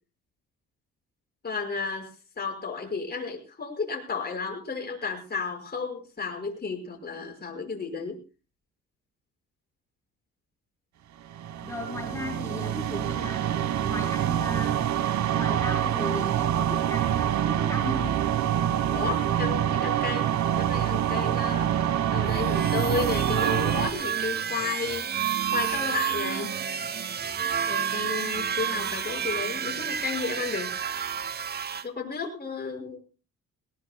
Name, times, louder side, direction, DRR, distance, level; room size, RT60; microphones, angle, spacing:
voice 1, 1.4-2.1 2.4-8.2 18.9-20.3 20.5-25.1 25.5-26.5 27.7-30.7 31.8-33.0, left 4 dB, 30° left, 3 dB, 5.7 m, -33 dB
sound 1, 11.3-23.9, right 10 dB, 70° right, 1.3 m, -26 dB
voice 2, 11.6-13.4 13.8-14.8 15.3-18.2, left 1 dB, 10° left, 1 dB, 4.3 m, -36 dB
sound 2, 22.2-31.8, right 8 dB, 35° right, 0.7 m, -30 dB
21.0 x 19.5 x 2.2 m, 0.33 s
cardioid pair, 90°, 30 cm